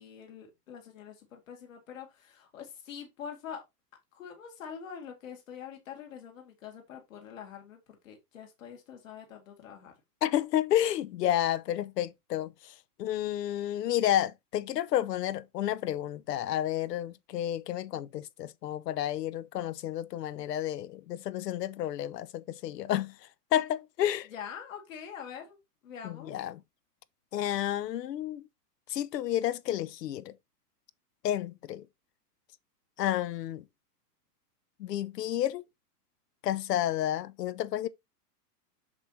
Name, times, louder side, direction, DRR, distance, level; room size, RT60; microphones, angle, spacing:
voice 1, 0.0-3.6 4.1-9.9 24.3-25.6 25.8-26.3, left 7 dB, 55° left, 2.3 m, -45 dB
voice 2, 10.2-23.2 23.5-24.3 26.0-26.6 27.3-28.4 28.9-30.3 31.2-31.9 33.0-33.6 34.8-35.6 36.4-37.9, left 12 dB, 80° left, 0.9 m, -31 dB
7.6 x 6.3 x 2.8 m
supercardioid pair, 180°, 47 cm